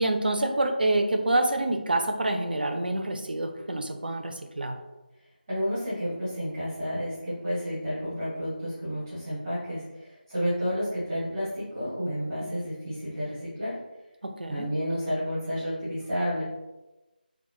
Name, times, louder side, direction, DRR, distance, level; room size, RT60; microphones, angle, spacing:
voice 1, 0.0-4.8 12.4-12.5 14.2-14.7, right 2 dB, 65° right, 5 dB, 0.4 m, -27 dB
voice 2, 5.5-13.8 14.5-16.4, equal, 20° right, -10 dB, 0.7 m, -31 dB
2.9 x 2.0 x 2.3 m, 1.0 s
figure-of-eight pair, 165°, 5 cm